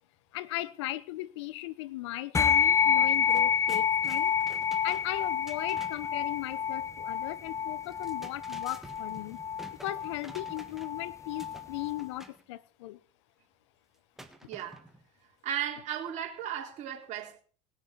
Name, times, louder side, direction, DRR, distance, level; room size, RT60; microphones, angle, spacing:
voice 1, 0.3-4.3 4.8-9.4 9.8-13.0, left 16 dB, 85° left, 0.7 m, -37 dB
sound 1, 2.3-12.0, left 7 dB, 20° left, 0.8 m, -29 dB
sound 2, 2.6-2.8 3.1-6.2 7.8-11.0 11.4-12.4 14.2-15.1, right 1 dB, ahead, 1.6 m, -50 dB
voice 2, 14.5-14.8 15.4-17.4, right 10 dB, 55° right, 3.6 m, -35 dB
20.0 x 6.8 x 4.6 m
supercardioid pair, 90°, 14 cm